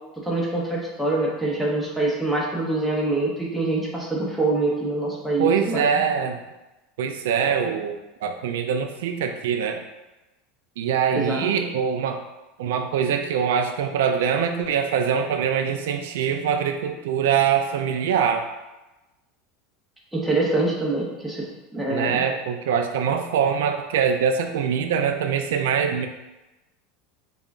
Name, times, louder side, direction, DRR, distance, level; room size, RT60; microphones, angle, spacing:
voice 1, 0.2-5.8 11.1-11.5 20.1-21.4 21.7-22.3, right 2 dB, ahead, -5 dB, 0.6 m, -25 dB
voice 2, 5.4-6.4 7.0-9.8 10.8-12.2 12.6-18.5 21.9-26.1, right 7 dB, 85° right, 6 dB, 0.3 m, -23 dB
5.3 x 2.3 x 2.4 m, 1.1 s
supercardioid pair, 170°, 0 cm